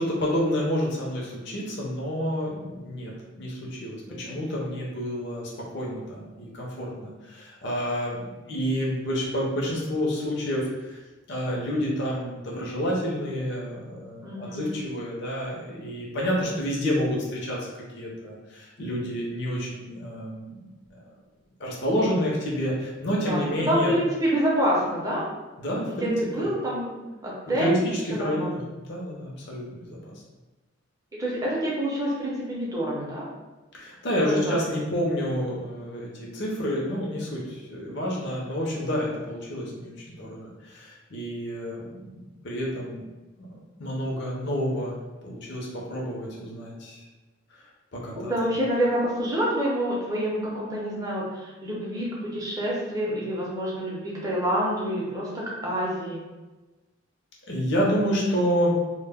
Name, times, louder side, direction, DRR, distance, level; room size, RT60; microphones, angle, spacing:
voice 1, 0.0-3.1 3.4-11.0 11.3-17.7 17.9-20.6 20.9-21.0 21.6-23.9 25.6-26.5 27.6-28.6 28.9-30.1 33.7-42.2 42.4-43.0 43.8-44.9 45.2-47.0 47.5-47.6 47.9-48.3 57.5-58.7, equal, 55° left, -4 dB, 0.6 m, -29 dB
voice 2, 14.2-14.8 23.1-25.2 25.7-26.9 27.2-27.8 28.1-28.5 31.2-33.3 34.2-34.6 48.3-56.2, equal, 15° right, -5 dB, 0.5 m, -27 dB
2.1 x 2.0 x 3.4 m, 1.2 s
head